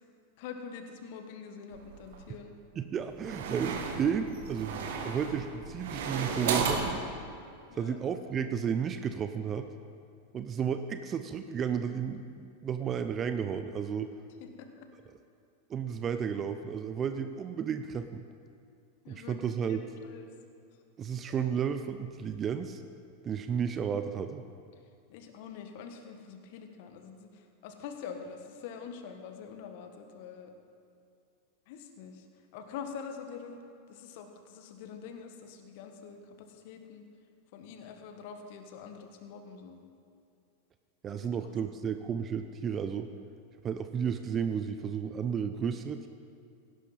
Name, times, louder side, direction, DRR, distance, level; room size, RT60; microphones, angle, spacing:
voice 1, 0.4-2.5 7.7-8.0 14.4-14.7 19.0-20.3 21.3-21.4 25.1-30.5 31.7-32.2 32.5-33.6 33.9-37.0 37.5-39.8, left 6 dB, 55° left, 6 dB, 1.4 m, -45 dB
sound 1, 1.7-2.3 3.0-7.0, right 5 dB, 65° right, 1.6 m, -34 dB
voice 2, 2.8-7.0 7.8-9.7 10.3-14.1 15.7-18.2 19.1-19.8 21.0-22.8 23.2-24.4 41.0-43.1 43.6-46.1, right 7 dB, 30° right, 9 dB, 0.6 m, -33 dB
17.0 x 11.5 x 4.2 m, 2.5 s
figure-of-eight pair, 90°, 0 cm